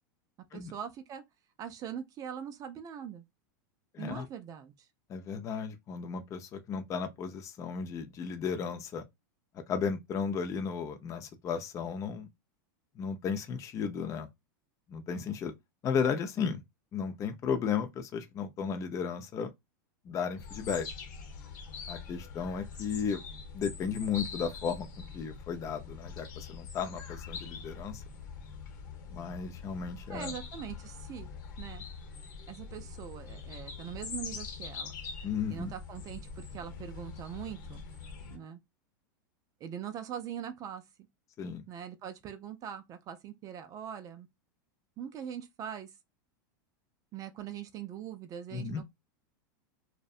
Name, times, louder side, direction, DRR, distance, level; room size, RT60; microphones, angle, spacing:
voice 1, 0.5-1.2 1.6-3.2 4.0-4.9 30.1-31.3 31.6-31.8 32.5-35.0 35.5-37.8 38.3-38.6 39.6-40.8 41.7-44.3 45.0-45.9 47.1-48.8, right 9 dB, 35° right, 0.4 m, -42 dB
voice 2, 3.9-4.3 5.1-9.0 9.7-12.3 13.0-14.3 14.9-15.5 15.8-16.6 16.9-19.5 20.1-20.9 21.9-23.2 23.5-28.0 29.1-30.3 35.2-35.7 41.4-41.6 48.5-48.8, left 6 dB, 30° left, 0.4 m, -34 dB
sound 1, 20.4-38.4, left 5 dB, 70° left, 0.9 m, -44 dB
2.6 x 2.1 x 2.4 m
supercardioid pair, 120°, 11 cm